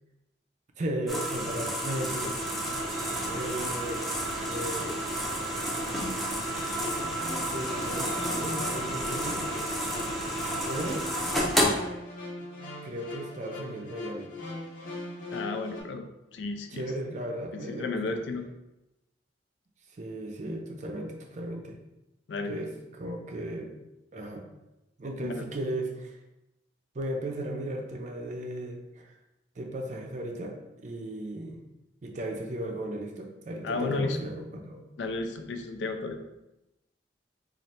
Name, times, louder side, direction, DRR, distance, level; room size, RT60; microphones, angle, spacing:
voice 1, 0.8-2.3 3.3-4.0 4.5-5.0 5.5-6.3 7.5-9.4 10.6-11.0 12.8-14.3 16.7-18.2 20.0-21.8 22.4-23.7 24.1-24.4 25.0-26.2 26.9-29.1 29.6-31.6 32.0-34.8, right 1 dB, 40° right, 2 dB, 0.5 m, -36 dB
sound 1, 1.1-11.6, equal, ahead, 0.7 m, -31 dB
Drip, 1.9-11.3, right 3 dB, 90° right, 0.5 m, -40 dB
voice 2, 2.2-2.9 6.5-6.8 15.3-16.0 16.3-16.8 17.5-18.5 22.3-22.6 25.2-25.5 33.6-34.2 35.0-36.2, left 3 dB, 75° left, 6 dB, 0.4 m, -34 dB
sound 2, 6.6-15.8, left 2 dB, 50° left, 0.8 m, -40 dB
3.2 x 2.5 x 4.1 m, 0.93 s
head